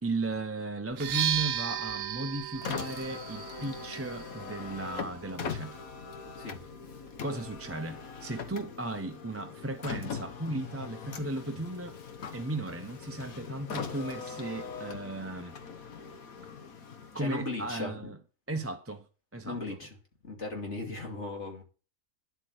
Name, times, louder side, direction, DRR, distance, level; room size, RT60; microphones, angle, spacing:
voice 1, 0.0-5.8 7.2-12.0 12.3-15.5 17.1-18.2 18.5-19.1 19.3-19.8, right 2 dB, 10° right, 0.7 m, -35 dB
sound 1, 0.9-8.7, right 10 dB, 75° right, 1.1 m, -37 dB
Car, 2.5-17.9, left 5 dB, 80° left, 1.7 m, -41 dB
voice 2, 17.1-18.0 19.4-19.9 20.2-21.6, left 2 dB, 55° left, 3.1 m, -37 dB
10.5 x 8.1 x 6.5 m
omnidirectional pair, 1.4 m